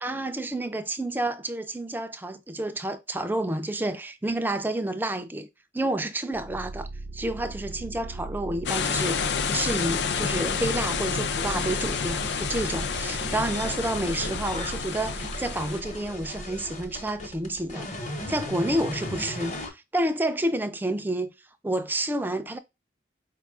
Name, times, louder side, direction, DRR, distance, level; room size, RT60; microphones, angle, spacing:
voice 1, 0.0-5.5 5.7-6.9 7.1-17.9 18.3-21.3 21.6-22.6, right 1 dB, 10° right, 0.3 m, -29 dB
sound 1, 6.3-18.6, right 2 dB, 90° right, 0.5 m, -39 dB
sound 2, 8.7-15.8, left 6 dB, 75° left, 0.4 m, -29 dB
sound 3, 11.7-19.7, left 2 dB, 40° left, 1.0 m, -38 dB
4.6 x 2.4 x 3.5 m
head